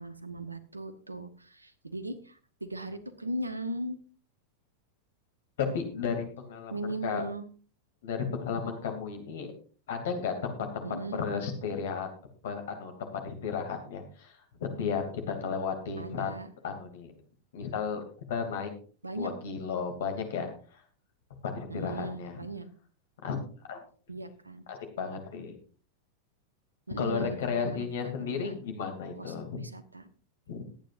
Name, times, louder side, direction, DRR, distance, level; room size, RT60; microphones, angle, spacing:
voice 1, 0.0-4.0 6.7-7.4 10.8-11.2 16.0-16.5 19.0-19.3 21.7-22.7 24.1-24.6 26.9-28.5 29.2-30.1, right 1 dB, 80° right, 13 dB, 1.1 m, -38 dB
voice 2, 5.6-7.2 8.0-9.5 9.9-10.8 11.1-12.1 12.4-16.3 16.6-17.1 17.5-18.0 18.3-18.7 19.1-20.8 21.4-22.4 23.2-23.4 23.7-23.8 24.7-25.5 27.0-29.6 30.5-30.6, left 6 dB, 60° left, 5 dB, 2.7 m, -33 dB
20.5 x 9.1 x 2.6 m, 0.40 s
figure-of-eight pair, 90°, 0 cm